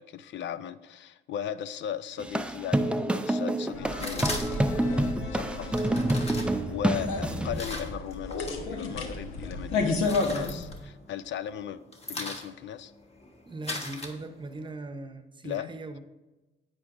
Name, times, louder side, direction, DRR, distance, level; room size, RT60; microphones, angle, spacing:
voice 1, 0.0-5.0 5.3-5.8 6.2-11.8 12.1-12.9 15.4-15.7, left 9 dB, 65° left, 14 dB, 0.4 m, -37 dB
sound 1, 2.2-7.6, right 1 dB, 5° right, 0.4 m, -28 dB
sound 2, 3.7-10.8, left 3 dB, 85° left, 1.2 m, -33 dB
sound 3, 4.0-4.8 5.7-8.6 8.9-9.5 9.8-11.3 11.6-14.7, left 2 dB, 30° left, 1.5 m, -39 dB
voice 2, 13.5-16.0, right 2 dB, 25° right, 8 dB, 0.8 m, -39 dB
10.5 x 8.5 x 2.6 m, 1.1 s
cardioid pair, 90°, 20 cm